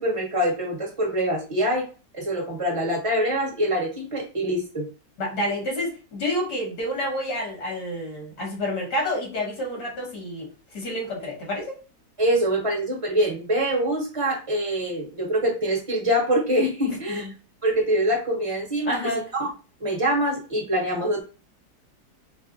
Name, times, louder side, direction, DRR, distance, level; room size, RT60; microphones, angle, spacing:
voice 1, 0.0-1.8 2.1-4.9 12.2-17.3 17.6-19.5 19.8-21.2, equal, 25° right, -2 dB, 1.0 m, -24 dB
voice 2, 5.2-10.5 10.7-11.8 17.1-17.3 18.9-19.2, left 1 dB, 80° left, -3 dB, 2.3 m, -29 dB
4.8 x 2.1 x 2.5 m, 0.34 s
omnidirectional pair, 1.8 m